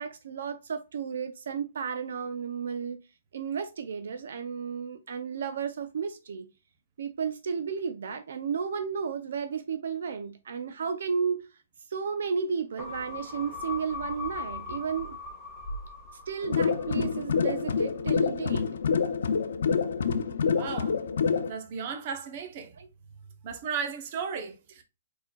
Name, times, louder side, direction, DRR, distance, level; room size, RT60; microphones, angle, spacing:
voice 1, 0.0-3.0 3.3-6.5 7.0-11.5 11.9-15.2 16.3-18.6 22.8-22.9, right 6 dB, 70° right, 0.6 m, -33 dB
sound 1, 12.8-17.5 17.8-17.9, left 3 dB, ahead, 1.2 m, -39 dB
sound 2, 16.4-21.5, left 6 dB, 75° left, 0.5 m, -27 dB
voice 2, 20.5-21.0 21.5-22.7 23.4-24.8, right 6 dB, 35° right, 0.8 m, -35 dB
4.5 x 4.2 x 2.3 m
hypercardioid pair, 170°, 0 cm